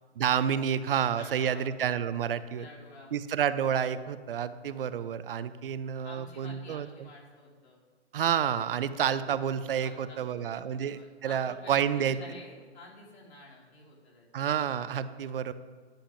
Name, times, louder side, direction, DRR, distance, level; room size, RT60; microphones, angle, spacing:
voice 1, 0.2-2.7 3.1-7.1 8.1-12.2 14.3-15.5, right 8 dB, 55° right, 14 dB, 0.5 m, -29 dB
voice 2, 0.9-1.7 2.6-3.2 6.0-7.8 9.3-9.4 9.8-14.4, left 2 dB, 70° left, -4 dB, 2.9 m, -50 dB
10.5 x 9.9 x 2.6 m, 1.5 s
hypercardioid pair, 150°, 34 cm